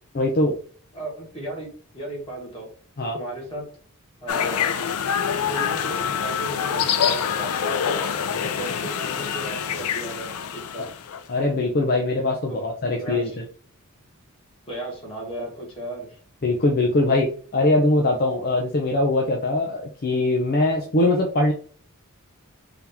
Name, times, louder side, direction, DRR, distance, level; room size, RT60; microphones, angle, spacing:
voice 1, 0.1-0.5 3.0-3.2 10.8-10.9 11.3-13.3 16.4-21.5, left 2 dB, 45° left, 1 dB, 0.6 m, -22 dB
voice 2, 0.9-1.7 1.9-2.7 3.1-3.7 4.2-4.7 5.3-10.9 12.5-12.7 13.0-13.4 14.7-16.1, right 1 dB, 25° left, -3 dB, 1.8 m, -35 dB
sound 1, 4.3-11.2, left 7 dB, 85° left, 0.5 m, -26 dB
3.7 x 2.9 x 3.5 m, 0.43 s
head